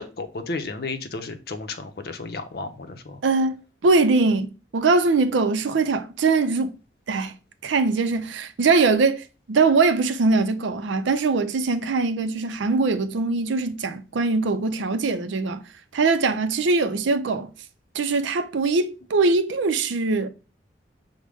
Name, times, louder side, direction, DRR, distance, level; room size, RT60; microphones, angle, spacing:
voice 1, 0.0-3.2, left 3 dB, 55° left, 0.6 m, -33 dB
voice 2, 3.2-3.5 3.8-6.7 7.1-7.3 7.6-15.6 15.9-17.5 17.9-20.3, right 3 dB, 85° right, 0.5 m, -22 dB
6.2 x 2.1 x 3.4 m
head